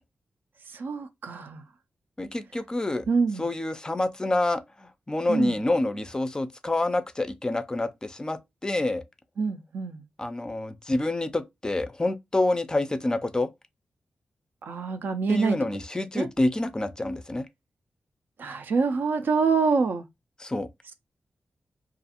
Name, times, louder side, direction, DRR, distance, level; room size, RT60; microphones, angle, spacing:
voice 1, 0.7-1.6 3.1-3.5 5.3-5.6 9.4-10.0 14.6-15.6 16.1-16.3 18.4-20.1, right 4 dB, 75° right, 0.4 m, -26 dB
voice 2, 2.2-3.0 3.4-9.0 10.2-13.5 15.3-17.5 20.4-20.7, left 2 dB, 20° left, 0.4 m, -27 dB
2.4 x 2.3 x 2.8 m
cardioid pair, 70°, 3 cm